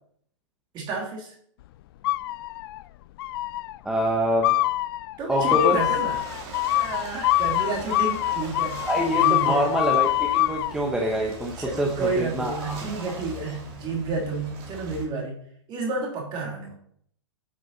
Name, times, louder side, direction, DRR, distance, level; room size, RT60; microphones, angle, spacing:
voice 1, 0.7-1.3 5.2-6.2 6.8-8.8 9.1-9.6 11.6-15.3 15.7-16.7, right 2 dB, 30° right, 0 dB, 3.1 m, -30 dB
sound 1, 2.0-2.8 3.2-3.7 4.4-10.7, left 16 dB, 50° left, 0.4 m, -24 dB
voice 2, 3.8-4.6 5.3-5.8 8.9-12.8, equal, 5° right, 0 dB, 1.1 m, -25 dB
Ocean / Boat Water vehicle, 5.4-15.0, right 3 dB, 50° right, 3.3 m, -41 dB
9.6 x 6.3 x 4.2 m, 0.64 s
hypercardioid pair, 130°, 16 cm